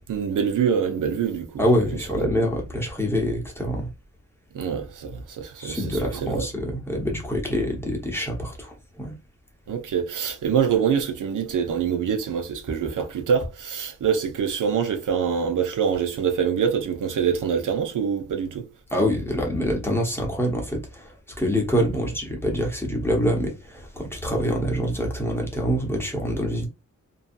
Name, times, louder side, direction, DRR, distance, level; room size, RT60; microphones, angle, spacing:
voice 1, 0.1-1.8 2.1-2.3 4.5-6.5 9.7-18.6, right 7 dB, 80° right, 0.7 m, -25 dB
voice 2, 1.6-3.9 5.6-9.1 18.9-26.7, equal, 10° left, 0.9 m, -25 dB
2.7 x 2.3 x 2.5 m
wide cardioid pair, 100°, 31 cm